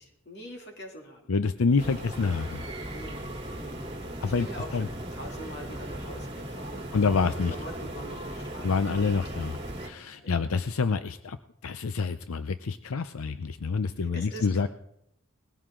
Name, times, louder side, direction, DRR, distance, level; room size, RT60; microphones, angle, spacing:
voice 1, 0.0-1.2 1.9-2.0 2.9-3.2 3.5-9.0 10.2-10.4 14.0-14.7, equal, 50° left, 1 dB, 2.8 m, -44 dB
voice 2, 1.3-2.6 4.2-4.5 4.7-4.9 6.9-7.6 8.6-9.6 9.8-11.4 11.6-14.7, left 4 dB, 85° left, 11 dB, 0.6 m, -27 dB
sound 1, 1.8-9.9, right 1 dB, 25° right, 2.1 m, -38 dB
sound 2, 2.9-10.9, equal, 10° right, 2.5 m, -52 dB
19.5 x 15.5 x 3.8 m, 0.79 s
head